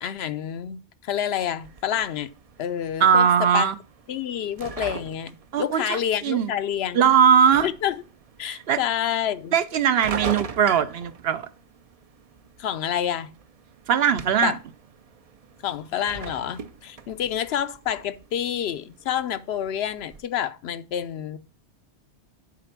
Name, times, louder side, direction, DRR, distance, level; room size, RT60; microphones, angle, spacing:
voice 1, 0.0-2.3 2.6-3.7 4.1-7.2 7.6-8.0 8.4-9.5 12.6-13.3 14.4-14.6 15.6-21.4, left 9 dB, 70° left, 0.8 m, -28 dB
sound 1, 1.6-20.2, right 5 dB, 45° right, 0.5 m, -41 dB
voice 2, 3.0-3.7 5.5-6.5 6.9-7.7 8.4-8.8 9.5-11.5 13.9-14.6, right 8 dB, 65° right, 0.8 m, -20 dB
7.6 x 4.3 x 5.9 m
omnidirectional pair, 1.1 m